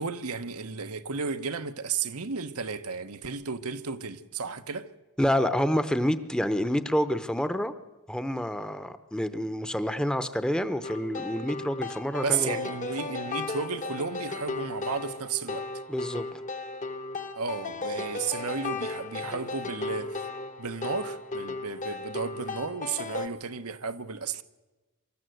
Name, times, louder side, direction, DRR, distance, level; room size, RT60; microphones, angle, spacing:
voice 1, 0.0-4.9 12.2-15.7 17.3-20.2 20.6-24.4, right 5 dB, 85° right, 1.1 m, -33 dB
voice 2, 5.2-7.7 8.1-12.6 15.9-16.4, equal, 5° left, 0.8 m, -28 dB
sound 1, 10.8-23.3, left 3 dB, 35° left, 0.9 m, -35 dB
24.5 x 14.0 x 7.9 m
head